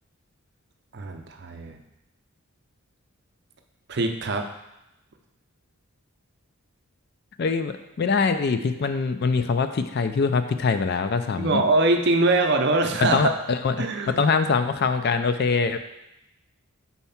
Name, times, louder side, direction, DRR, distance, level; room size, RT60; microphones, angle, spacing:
voice 1, 0.9-1.8 3.9-4.5 11.4-13.2 13.8-14.3, right 2 dB, 50° right, 5 dB, 0.6 m, -23 dB
voice 2, 7.4-11.6 13.0-13.8 14.2-15.8, left 4 dB, 45° left, 9 dB, 0.3 m, -23 dB
4.5 x 4.2 x 5.7 m, 0.91 s
head